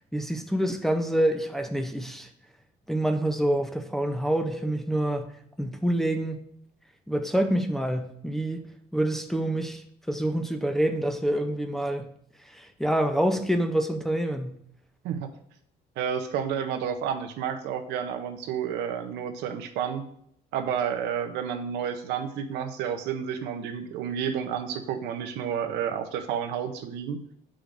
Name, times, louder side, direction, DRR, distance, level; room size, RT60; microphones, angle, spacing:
voice 1, 0.1-2.3 2.9-5.3 5.6-6.4 7.1-8.6 8.9-12.1 12.5-14.6, right 1 dB, ahead, 0.6 m, -27 dB
voice 2, 16.0-20.0 20.5-27.4, right 8 dB, 90° right, 0.7 m, -30 dB
8.7 x 5.0 x 2.6 m
cardioid pair, 110°, 17 cm